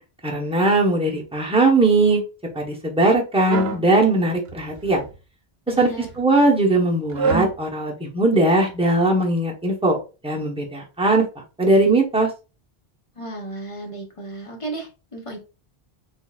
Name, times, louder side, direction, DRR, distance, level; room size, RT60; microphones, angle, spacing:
voice 1, 0.2-2.2 2.5-5.0 5.7-10.0 10.2-11.2 11.6-12.3, right 2 dB, 5° right, -1 dB, 0.9 m, -19 dB
sound 1, 3.5-3.9 4.5-5.2 5.8-6.2 7.1-7.6, right 5 dB, 80° right, 0.9 m, -26 dB
voice 2, 5.7-6.1 13.2-15.4, right 2 dB, 30° left, 1 dB, 1.1 m, -34 dB
4.0 x 3.6 x 2.4 m, 0.31 s
omnidirectional pair, 1.0 m